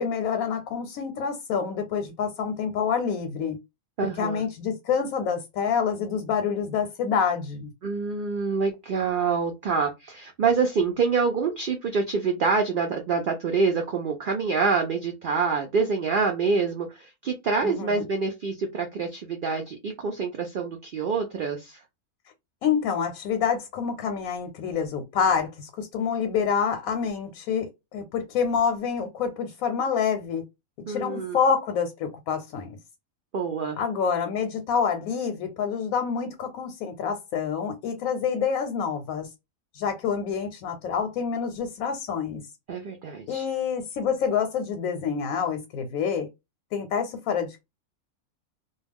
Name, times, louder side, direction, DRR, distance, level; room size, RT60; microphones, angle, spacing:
voice 1, 0.0-3.6 4.2-7.7 17.6-18.0 22.6-30.4 30.9-32.8 33.8-39.3 39.7-42.4 43.3-46.3 46.7-47.6, left 6 dB, 85° left, 1.0 m, -27 dB
voice 2, 4.0-4.4 7.8-21.8 30.9-31.4 33.3-33.8 42.7-43.5, right 5 dB, 70° right, 0.4 m, -26 dB
2.3 x 2.2 x 3.3 m
omnidirectional pair, 1.4 m